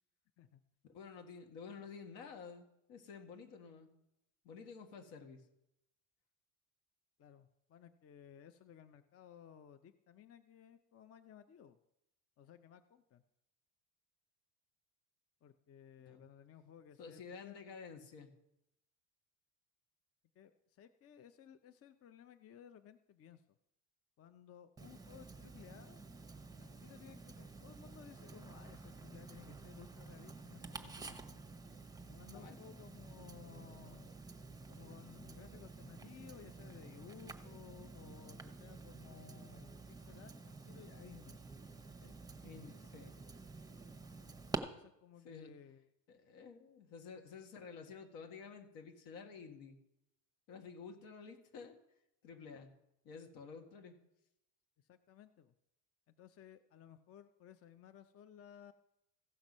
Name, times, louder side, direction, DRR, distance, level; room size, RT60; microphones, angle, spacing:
voice 1, 0.9-3.9 4.4-5.4 16.0-16.2 17.0-18.3 32.0-32.8 42.4-43.2 45.2-45.5 46.1-49.8 50.5-51.8 52.2-52.7 53.0-54.0, left 5 dB, 75° left, 4 dB, 2.0 m, -51 dB
voice 2, 7.2-11.8 12.4-13.2 15.4-17.6 20.3-23.4 24.2-26.0 26.6-31.4 32.1-34.1 34.7-41.4 42.0-42.2 44.7-45.9 54.8-55.5 56.1-58.7, left 9 dB, 35° left, 11 dB, 0.6 m, -58 dB
Tick-tock, 24.8-44.6, right 3 dB, 10° right, 0.9 m, -50 dB
15.5 x 5.9 x 5.4 m, 0.83 s
supercardioid pair, 105°, 41 cm